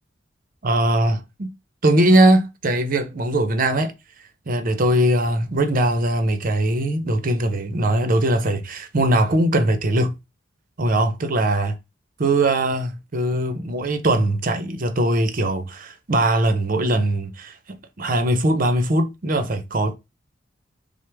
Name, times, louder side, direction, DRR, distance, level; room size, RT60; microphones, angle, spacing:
voice 1, 0.6-1.5 1.8-3.9 4.5-10.2 10.8-11.7 12.2-17.5 18.0-19.9, right 1 dB, 45° right, 0.7 m, -20 dB
6.2 x 2.1 x 3.4 m
head